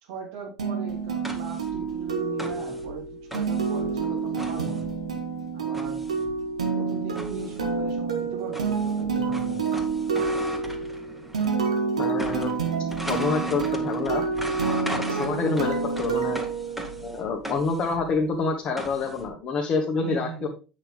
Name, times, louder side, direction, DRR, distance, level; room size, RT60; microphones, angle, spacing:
voice 1, 0.0-4.9 5.5-6.0 6.7-9.6 20.0-20.5, right 5 dB, 60° right, 0 dB, 3.0 m, -38 dB
sound 1, 0.6-17.3, right 5 dB, 80° right, 1.3 m, -28 dB
sound 2, 0.9-11.6 11.9-19.3, equal, 5° right, 1.9 m, -39 dB
voice 2, 12.0-12.5 13.1-14.2 15.1-16.4 17.0-20.5, left 4 dB, 40° left, 0 dB, 1.5 m, -27 dB
8.8 x 6.5 x 3.5 m, 0.33 s
figure-of-eight pair, 70°, 3 cm